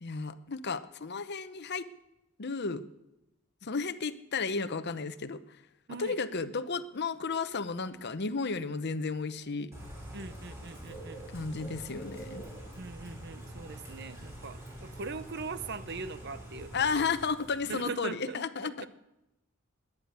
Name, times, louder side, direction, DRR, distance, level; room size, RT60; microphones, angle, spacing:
voice 1, 0.0-1.9 2.4-2.8 3.6-5.4 5.9-9.7 11.3-12.4 16.7-18.9, left 4 dB, 55° left, 12 dB, 0.8 m, -33 dB
voice 2, 5.9-6.2 10.1-11.2 12.8-17.1 17.7-18.9, right 4 dB, 55° right, 13 dB, 0.8 m, -41 dB
Bird / Rain, 9.7-17.9, right 1 dB, 15° right, 5.1 m, -45 dB
21.0 x 9.8 x 6.8 m, 0.92 s
head